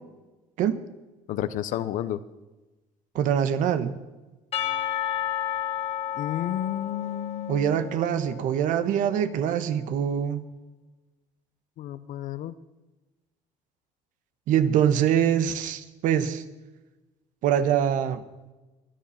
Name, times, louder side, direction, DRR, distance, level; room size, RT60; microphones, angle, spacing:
voice 1, 1.3-2.2 6.1-7.9 11.8-12.5, left 12 dB, 75° left, 14 dB, 0.9 m, -31 dB
voice 2, 3.1-4.0 7.5-10.4 14.5-16.4 17.4-18.2, right 9 dB, 75° right, 10 dB, 1.3 m, -24 dB
Percussion / Church bell, 4.5-8.9, left 10 dB, 45° left, 1.3 m, -32 dB
24.0 x 10.0 x 5.8 m, 1.1 s
cardioid pair, 95°, 14 cm